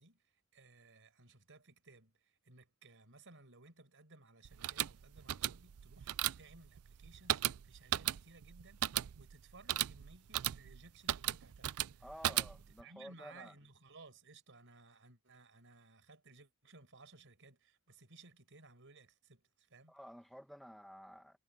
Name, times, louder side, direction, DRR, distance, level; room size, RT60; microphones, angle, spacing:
voice 1, 0.0-12.4 12.8-19.9, right 3 dB, 60° right, 5.3 m, -60 dB
sound 1, 4.4-12.8, right 13 dB, 80° right, 0.4 m, -37 dB
voice 2, 12.0-13.5 19.9-21.4, equal, ahead, 1.7 m, -52 dB
head